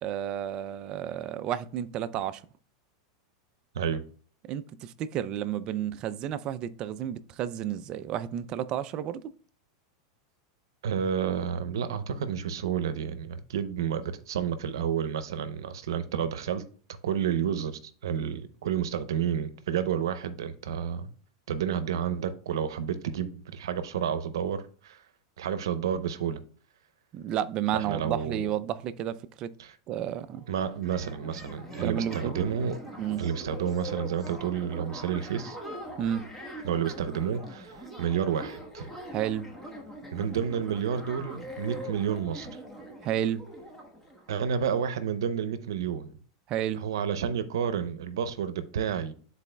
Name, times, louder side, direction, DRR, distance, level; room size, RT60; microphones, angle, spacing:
voice 1, 0.0-2.4 4.4-9.3 27.1-29.5 29.9-30.5 31.8-32.4 33.0-33.2 36.0-36.3 39.1-39.5 43.0-43.5 46.5-46.8, right 10 dB, 35° right, 0.4 m, -31 dB
voice 2, 10.8-16.6 17.0-21.1 21.5-25.0 25.4-26.4 27.7-28.4 29.6-29.7 30.5-32.8 33.2-35.6 36.6-38.9 40.1-42.5 44.3-46.1 46.7-49.1, right 8 dB, 90° right, 0.6 m, -30 dB
sound 1, 30.3-44.9, right 1 dB, 10° left, 1.1 m, -43 dB
12.0 x 4.0 x 2.2 m
supercardioid pair, 145°, 2 cm